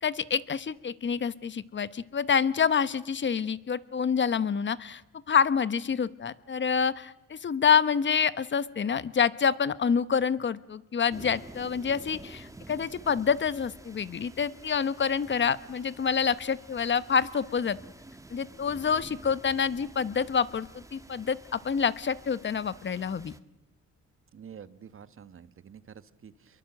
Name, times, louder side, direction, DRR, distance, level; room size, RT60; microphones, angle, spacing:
voice 1, 0.0-5.0 5.3-17.8 18.3-23.3, left 6 dB, 40° left, 15 dB, 1.1 m, -27 dB
sound 1, 11.1-23.4, right 2 dB, 10° right, 1.5 m, -49 dB
voice 2, 24.3-26.6, right 7 dB, 45° right, 13 dB, 1.4 m, -48 dB
28.0 x 22.5 x 7.9 m, 0.87 s
cardioid pair, 90°, 30 cm